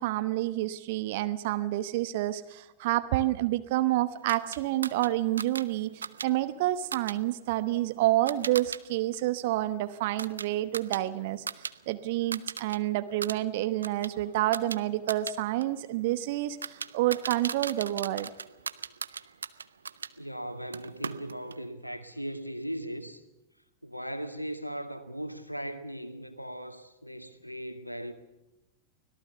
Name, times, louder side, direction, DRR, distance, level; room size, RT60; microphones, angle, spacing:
voice 1, 0.0-18.3, right 15 dB, 50° right, 1.0 m, -29 dB
sound 1, 4.3-8.8 9.1-11.7 12.0-12.8 13.1-20.1 20.7-21.6, right 6 dB, 75° right, 0.8 m, -39 dB
voice 2, 20.2-23.2 23.8-28.1, equal, 90° left, 2.0 m, -38 dB
25.0 x 18.0 x 6.9 m
figure-of-eight pair, 90°, 0 cm